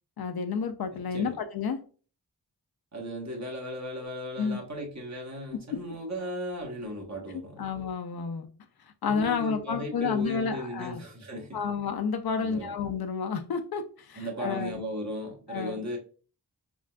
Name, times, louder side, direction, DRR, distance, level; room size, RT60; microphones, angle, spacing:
voice 1, 0.2-1.8 4.4-4.6 7.6-8.5 9.0-11.0 11.5-14.8 15.5-15.8, left 5 dB, 65° left, 8 dB, 0.5 m, -30 dB
voice 2, 0.9-1.4 2.9-7.7 9.0-11.6 12.4-12.7 14.1-16.0, equal, 45° right, 0 dB, 1.0 m, -36 dB
3.6 x 2.4 x 2.2 m, 0.39 s
cardioid pair, 40°, 40 cm